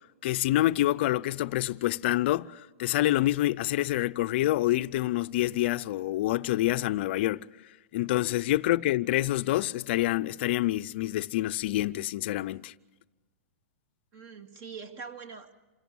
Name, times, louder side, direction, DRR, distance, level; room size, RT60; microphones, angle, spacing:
voice 1, 0.2-7.5 7.9-12.7, left 15 dB, 50° left, 0.6 m, -27 dB
voice 2, 14.1-15.5, right 5 dB, 30° right, 2.1 m, -44 dB
27.5 x 17.5 x 7.3 m
hypercardioid pair, 155°, 8 cm